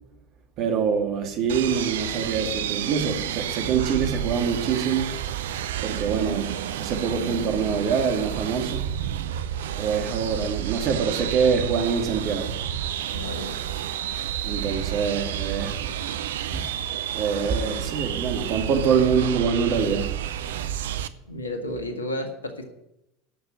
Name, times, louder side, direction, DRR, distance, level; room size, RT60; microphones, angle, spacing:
voice 1, 0.6-5.2 5.8-6.5 6.8-8.9 9.8-12.6 14.4-15.9 16.5-16.6 17.1-20.1, right 6 dB, 45° right, 2.3 m, -25 dB
sound 1, 1.5-21.1, right 10 dB, 65° right, 0.6 m, -30 dB
voice 2, 13.1-13.6 21.2-22.6, left 1 dB, 80° left, 1.8 m, -32 dB
11.5 x 6.7 x 9.6 m
figure-of-eight pair, 75°, 0 cm